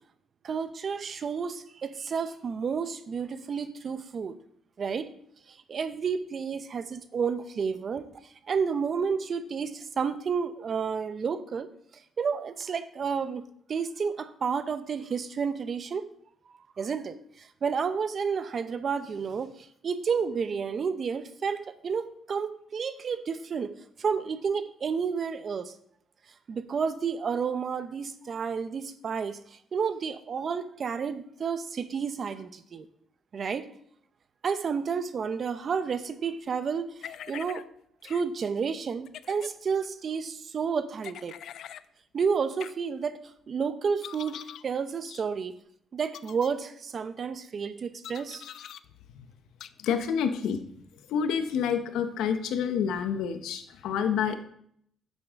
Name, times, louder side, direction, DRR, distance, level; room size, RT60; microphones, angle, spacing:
voice 1, 0.4-4.3 4.8-5.1 5.5-8.1 8.5-16.1 16.8-25.7 26.5-32.9 33.3-33.7 34.4-37.6 38.0-41.4 42.1-43.2 43.5-45.5 45.9-48.5, right 6 dB, 50° right, 0.7 m, -31 dB
sound 1, 37.0-37.6 38.0-38.2 39.0-39.5 41.0-41.8 42.6-42.7 44.0-44.6 45.0-45.2 46.1-46.5 48.0-48.8 49.6-49.7, left 10 dB, 70° left, 0.3 m, -43 dB
voice 2, 49.8-50.6 51.1-54.4, left 7 dB, 85° left, 0.8 m, -28 dB
10.0 x 7.7 x 3.6 m
cardioid pair, 90°, 0 cm